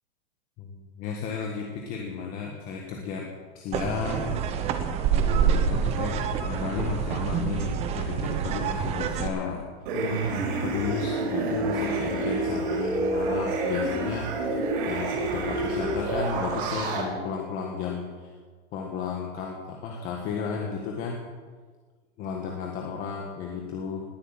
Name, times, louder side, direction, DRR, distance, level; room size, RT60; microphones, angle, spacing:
voice 1, 0.6-3.3 3.5-4.7 5.3-9.6 10.6-18.3 18.7-21.2 22.2-24.0, left 5 dB, 25° left, 1 dB, 1.6 m, -33 dB
sound 1, 3.7-9.3, right 7 dB, 20° right, 1.0 m, -27 dB
sound 2, 9.9-17.0, right 2 dB, 50° right, 5.6 m, -28 dB
19.0 x 8.0 x 8.9 m, 1.5 s
supercardioid pair, 165°, 33 cm